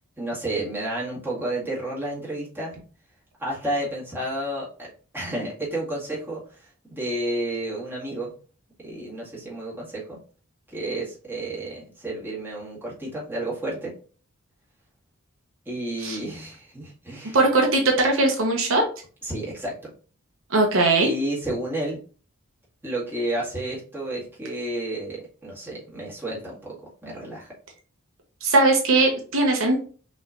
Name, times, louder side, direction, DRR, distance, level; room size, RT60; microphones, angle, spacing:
voice 1, 0.2-2.8 3.4-6.4 6.9-8.3 8.8-10.2 10.7-13.9 15.7-17.4 19.2-19.7 21.0-22.0 22.8-26.8 27.0-27.5, right 1 dB, 10° right, -6 dB, 2.0 m, -31 dB
voice 2, 17.3-18.8 20.5-21.1 28.4-29.8, right 2 dB, 65° right, 2 dB, 0.9 m, -20 dB
6.0 x 3.2 x 2.5 m, 0.40 s
head